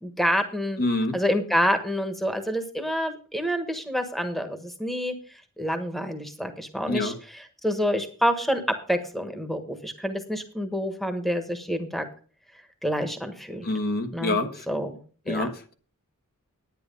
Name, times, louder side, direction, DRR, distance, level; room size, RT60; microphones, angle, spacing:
voice 1, 0.0-0.8 1.1-5.1 5.6-7.1 7.6-12.0 12.8-13.7 14.1-14.4 14.7-15.0 15.3-15.5, equal, ahead, 8 dB, 1.3 m, -27 dB
voice 2, 0.8-1.2 6.9-7.2 13.6-14.7 15.3-15.7, left 2 dB, 45° left, 6 dB, 1.2 m, -27 dB
10.5 x 9.5 x 5.3 m, 0.40 s
head